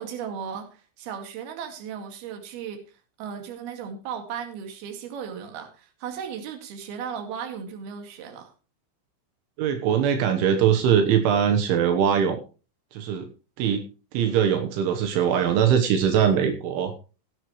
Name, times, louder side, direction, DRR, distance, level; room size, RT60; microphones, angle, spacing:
voice 1, 0.0-2.8 3.2-8.5, right 7 dB, 60° right, 5 dB, 3.8 m, -36 dB
voice 2, 9.6-12.4 12.9-13.3 13.6-13.8 14.1-16.9, right 8 dB, 80° right, 6 dB, 3.7 m, -21 dB
17.0 x 10.0 x 3.2 m, 0.33 s
omnidirectional pair, 5.5 m